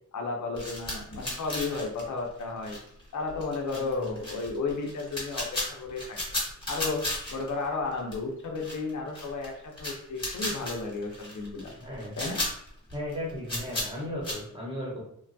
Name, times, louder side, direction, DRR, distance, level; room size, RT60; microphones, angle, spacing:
voice 1, 0.1-2.8 3.1-6.2 6.6-11.7 12.2-12.4, left 3 dB, 70° left, 1 dB, 0.6 m, -33 dB
sound 1, 0.6-3.0 3.3-7.7 7.9-8.1 8.5-9.5 9.7-14.4, left 1 dB, 15° left, 1.1 m, -34 dB
voice 2, 3.7-4.2 11.8-12.2 12.9-15.0, left 1 dB, 15° right, -5 dB, 0.9 m, -36 dB
3.1 x 2.2 x 2.6 m, 0.69 s
wide cardioid pair, 160°, 31 cm